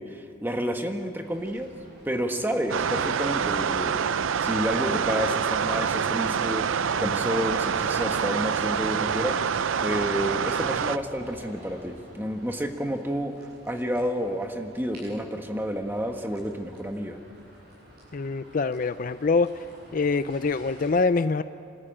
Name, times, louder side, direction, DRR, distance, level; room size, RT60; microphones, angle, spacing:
voice 1, 0.0-1.7 2.0-13.3 13.6-17.2, equal, 10° right, 4 dB, 1.4 m, -30 dB
sound 1, 1.2-20.9, equal, 50° right, 7.6 m, -51 dB
sound 2, 2.7-11.0, right 7 dB, 85° right, 0.5 m, -26 dB
voice 2, 18.1-19.5 19.9-21.4, left 4 dB, 45° left, 13 dB, 0.4 m, -24 dB
27.5 x 13.5 x 8.9 m, 2.4 s
head